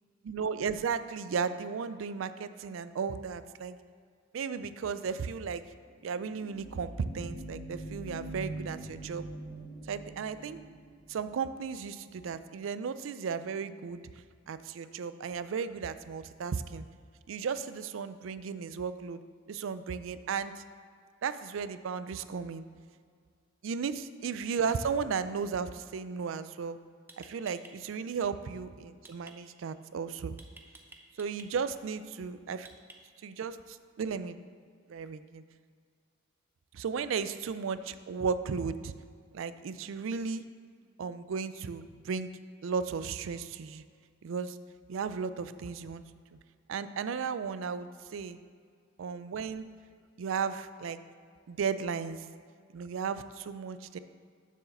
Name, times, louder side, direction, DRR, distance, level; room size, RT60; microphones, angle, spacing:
voice 1, 0.2-3.8 4.3-5.6 6.0-9.3 9.9-10.6 11.1-14.0 14.5-16.9 17.3-19.2 19.5-20.6 21.2-22.7 23.6-26.8 27.2-30.3 31.2-32.7 33.2-34.4 34.9-35.4 36.7-38.9 39.3-40.4 41.0-42.3 42.6-43.8 44.2-44.6 44.9-46.0 46.7-48.4 49.0-49.7 50.2-51.0 51.5-52.2 52.7-54.0, right 6 dB, 85° right, 13 dB, 0.4 m, -35 dB
sound 1, 5.9-11.4, right 2 dB, 60° left, 1.7 m, -43 dB
sound 2, 27.1-27.7 29.0-29.3 30.4-31.5 32.6-33.2, right 2 dB, 10° right, 0.6 m, -52 dB
7.2 x 4.7 x 6.6 m, 2.1 s
head